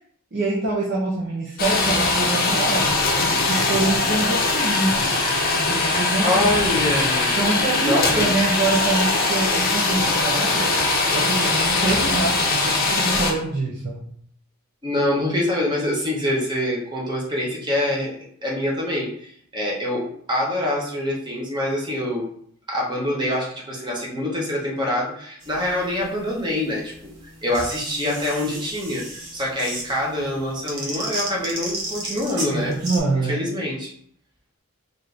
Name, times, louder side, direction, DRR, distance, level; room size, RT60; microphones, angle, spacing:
voice 1, 0.3-3.0 3.5-5.1 5.5-6.4 7.4-10.7 11.1-14.0 32.5-33.4, right 2 dB, 45° right, -7 dB, 0.7 m, -25 dB
sound 1, 1.6-13.3, left 3 dB, 40° left, 0.6 m, -21 dB
voice 2, 6.2-7.3 7.8-8.3 14.8-18.1 18.4-22.3 22.7-26.9 27.4-32.7 33.3-33.9, left 1 dB, 20° right, -3 dB, 0.9 m, -25 dB
sound 2, 25.4-33.0, right 2 dB, 85° right, 1.2 m, -34 dB
4.2 x 2.5 x 3.3 m, 0.63 s
head